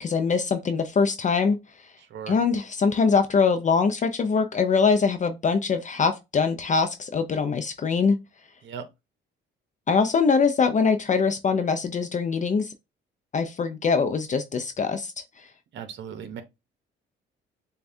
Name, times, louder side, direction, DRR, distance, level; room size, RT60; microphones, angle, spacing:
voice 1, 0.0-1.6 2.3-8.2 9.9-12.7 13.3-15.1, left 5 dB, 40° left, 0.5 m, -23 dB
voice 2, 15.7-16.4, right 8 dB, 65° right, 0.8 m, -37 dB
6.8 x 2.3 x 2.6 m
cardioid pair, 90°, 20 cm